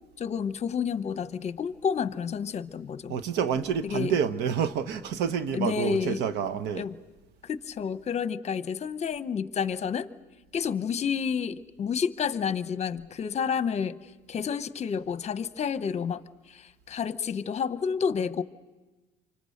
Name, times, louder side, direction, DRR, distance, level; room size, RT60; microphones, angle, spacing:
voice 1, 0.2-3.1 3.8-4.1 5.5-6.2 6.8-6.9 7.4-10.1 10.5-14.0 14.3-16.2 16.5-18.4, left 7 dB, 40° left, 13 dB, 0.9 m, -30 dB
voice 2, 3.1-6.8, right 7 dB, 90° right, 11 dB, 1.1 m, -28 dB
29.0 x 25.0 x 6.5 m, 1.2 s
cardioid pair, 110°, 17 cm